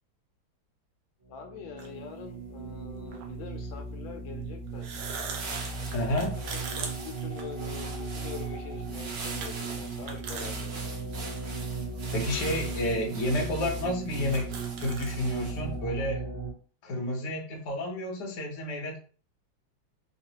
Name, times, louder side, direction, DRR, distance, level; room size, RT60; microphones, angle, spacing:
sound 1, 1.2-16.5, right 4 dB, 40° right, 0.9 m, -37 dB
voice 1, 1.3-4.9 5.7-10.9, left 8 dB, 75° left, 3 dB, 1.3 m, -44 dB
sound 2, 1.8-1.9 3.1-3.3 4.7-8.0 8.4-8.5 9.4-9.5 9.9-10.5 11.0-11.1 12.0-12.1 12.9-13.0 13.2-13.3 13.8-13.9 14.1-15.2, right 5 dB, 80° right, 1.4 m, -39 dB
sound 3, 4.7-15.7, right 3 dB, 65° right, 1.3 m, -43 dB
voice 2, 5.9-6.3 12.1-14.5 14.8-16.2 16.8-19.0, left 1 dB, 55° left, 0 dB, 0.9 m, -30 dB
3.9 x 2.0 x 2.8 m, 0.40 s
omnidirectional pair, 2.2 m